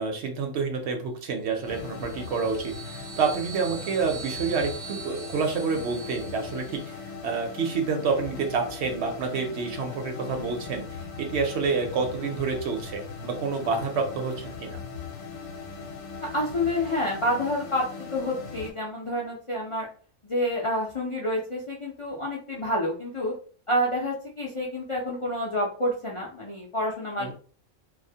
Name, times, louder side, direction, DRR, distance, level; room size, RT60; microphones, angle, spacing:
voice 1, 0.0-14.8 27.2-27.3, right 5 dB, 65° right, 3 dB, 0.8 m, -28 dB
sound 1, 1.5-7.0, right 6 dB, 85° right, 0.3 m, -43 dB
sound 2, 1.6-18.7, left 5 dB, 70° left, 0.9 m, -39 dB
voice 2, 16.3-19.9 20.2-23.3 23.7-27.3, left 1 dB, 55° left, -3 dB, 0.3 m, -28 dB
2.3 x 2.0 x 2.7 m, 0.41 s
omnidirectional pair, 1.3 m